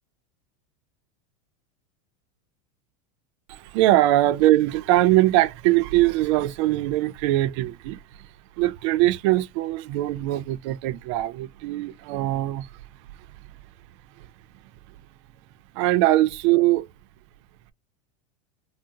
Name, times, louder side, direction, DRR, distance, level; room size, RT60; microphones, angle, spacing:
voice 1, 3.5-8.0 8.6-12.7 15.7-16.9, right 15 dB, 55° right, 0.5 m, -21 dB
3.6 x 2.0 x 2.7 m
supercardioid pair, 150°, 18 cm